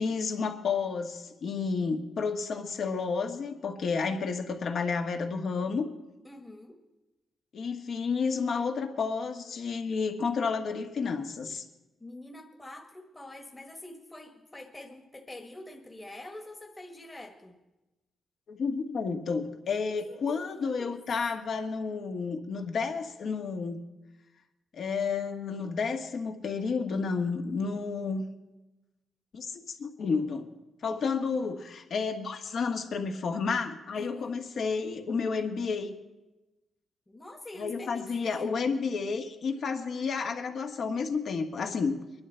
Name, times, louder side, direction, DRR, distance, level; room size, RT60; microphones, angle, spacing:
voice 1, 0.0-5.9 7.5-11.6 18.5-23.8 24.7-28.2 29.3-30.5 30.8-35.9 37.6-42.0, left 5 dB, 60° left, 4 dB, 1.4 m, -31 dB
voice 2, 6.2-6.8 12.0-17.6 19.9-21.0 33.9-34.4 37.1-38.7, left 1 dB, 15° left, 3 dB, 1.3 m, -46 dB
22.0 x 11.5 x 4.4 m, 1.1 s
cardioid pair, 105°, 0 cm